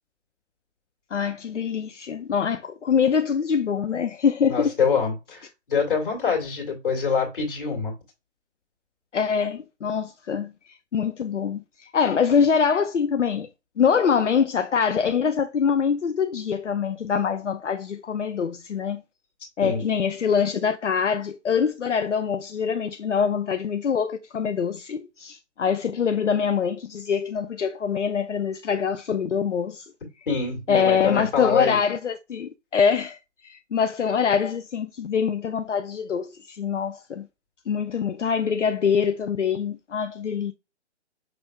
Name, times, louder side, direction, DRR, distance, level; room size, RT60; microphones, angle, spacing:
voice 1, 1.1-4.7 9.1-10.5 10.9-13.5 13.8-19.0 19.6-29.9 30.7-37.3 37.7-40.5, left 6 dB, 85° left, 0.5 m, -24 dB
voice 2, 4.5-7.9 19.6-19.8 30.3-31.8, left 5 dB, 50° left, 2.0 m, -25 dB
5.9 x 3.3 x 2.2 m
figure-of-eight pair, 140°, 35 cm